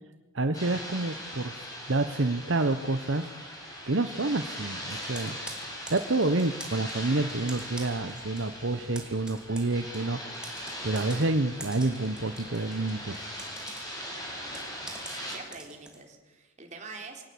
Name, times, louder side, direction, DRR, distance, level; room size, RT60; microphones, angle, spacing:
voice 1, 0.3-1.5 1.9-3.3 3.9-5.4 5.7-10.6 10.8-13.2, right 2 dB, 65° right, 9 dB, 1.0 m, -28 dB
sound 1, 0.5-15.4, equal, 20° left, 6.8 m, -40 dB
Computer keyboard, 4.9-8.5 8.8-16.0, right 2 dB, 5° right, 2.7 m, -46 dB
voice 2, 15.0-17.2, right 4 dB, 35° right, 2 dB, 4.0 m, -45 dB
24.5 x 17.5 x 8.6 m, 1.1 s
head